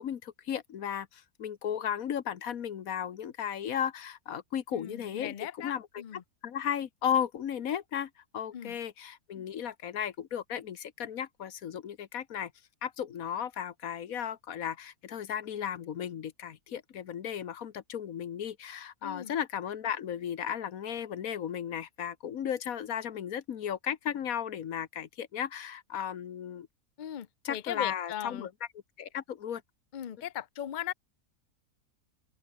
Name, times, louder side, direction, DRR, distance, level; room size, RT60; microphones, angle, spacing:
voice 1, 0.0-5.9 6.1-12.5 12.8-26.7 27.4-28.5 29.0-29.6, left 9 dB, 65° left, 1.5 m, -35 dB
voice 2, 4.7-6.2 8.5-8.8 19.0-19.3 27.0-28.5 29.9-30.9, left 10 dB, 50° left, 0.5 m, -38 dB
open air
omnidirectional pair, 1.6 m